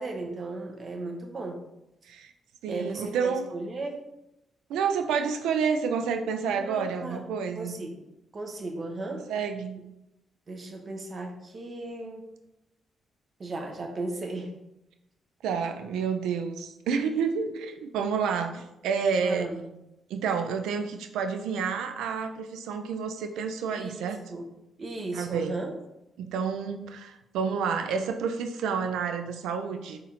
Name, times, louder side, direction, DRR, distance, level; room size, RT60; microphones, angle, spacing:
voice 1, 0.0-1.6 2.7-4.0 6.5-7.2 7.6-8.0 8.3-9.3 10.5-12.3 13.4-14.5 19.2-19.7 23.7-24.5 24.8-25.7, right 2 dB, 50° right, 2 dB, 0.7 m, -36 dB
voice 2, 2.6-3.5 4.7-7.7 9.3-9.8 15.4-19.5 20.1-24.2 25.1-25.6 26.2-30.0, right 6 dB, 85° right, 7 dB, 0.3 m, -29 dB
4.0 x 2.5 x 2.8 m, 0.89 s
supercardioid pair, 60°, 0 cm